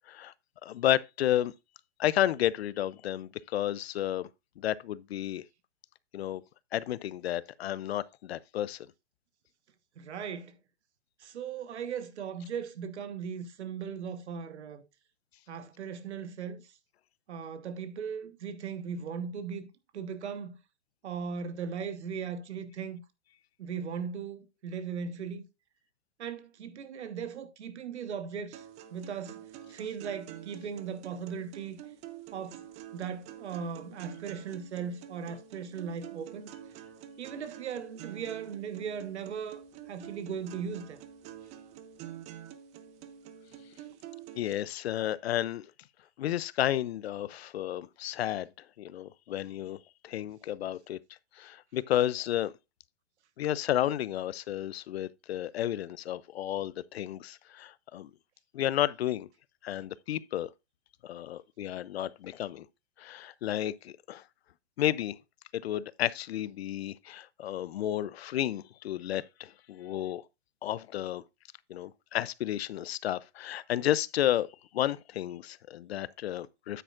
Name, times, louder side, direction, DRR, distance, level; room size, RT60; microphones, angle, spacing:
voice 1, 0.6-1.5 2.0-4.3 4.6-5.4 6.1-6.4 6.7-8.9 44.4-45.7 46.2-48.5 48.8-51.0 51.4-52.5 53.4-58.1 58.5-59.3 59.6-60.5 61.0-62.7 63.0-64.2 64.8-65.2 65.5-70.2 70.6-71.2 71.7-76.8, left 12 dB, 60° left, 0.5 m, -32 dB
voice 2, 9.9-10.6 11.2-14.8 15.5-16.7 17.3-19.7 19.9-20.6 21.0-23.0 23.6-25.4 26.2-28.7 28.9-29.4 29.7-31.8 32.3-32.6 32.9-36.5 37.2-41.0, right 6 dB, 70° right, 1.4 m, -38 dB
sound 1, 28.5-44.5, right 10 dB, 20° right, 0.6 m, -48 dB
9.2 x 8.4 x 2.5 m
hypercardioid pair, 135°, 35 cm